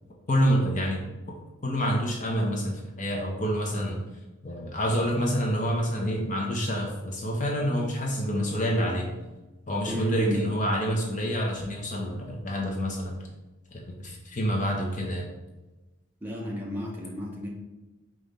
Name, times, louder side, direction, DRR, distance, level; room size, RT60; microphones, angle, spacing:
voice 1, 0.3-1.0 1.6-4.0 4.4-9.1 9.7-13.2 13.7-15.3, equal, 40° left, 0 dB, 0.7 m, -27 dB
voice 2, 9.9-10.5 16.2-17.5, equal, 10° right, -3 dB, 0.7 m, -32 dB
5.1 x 2.4 x 4.1 m, 1.1 s
head